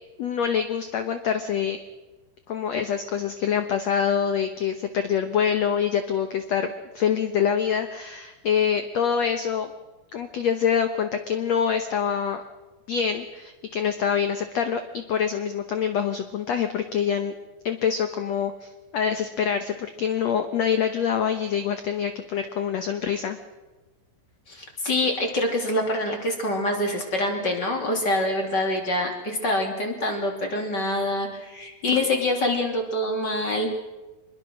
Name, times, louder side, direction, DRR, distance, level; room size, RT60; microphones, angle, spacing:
voice 1, 0.2-1.8 2.5-9.7 10.1-12.4 12.9-17.3 17.6-23.4, left 7 dB, 80° left, 7 dB, 1.5 m, -25 dB
voice 2, 24.5-33.7, left 1 dB, 30° left, 2 dB, 3.2 m, -25 dB
25.0 x 21.5 x 6.4 m, 1.2 s
omnidirectional pair, 4.6 m